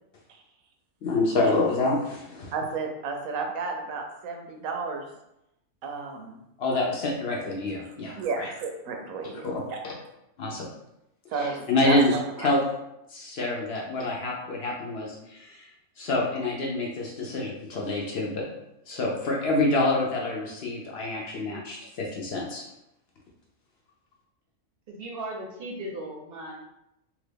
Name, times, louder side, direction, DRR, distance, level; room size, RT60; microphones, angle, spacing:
voice 1, 1.0-2.5 6.6-8.5 9.4-9.9 10.4-10.7 11.4-12.1 12.4-12.6 13.1-15.6 16.0-18.4 18.9-22.6, left 2 dB, 60° left, -2 dB, 0.7 m, -27 dB
voice 2, 2.5-5.1 5.8-6.4 8.2-9.8 11.3-12.5, right 4 dB, 85° right, 3 dB, 1.0 m, -32 dB
voice 3, 24.9-26.6, right 1 dB, 60° right, -1 dB, 0.7 m, -37 dB
2.9 x 2.4 x 3.4 m, 0.85 s
omnidirectional pair, 1.4 m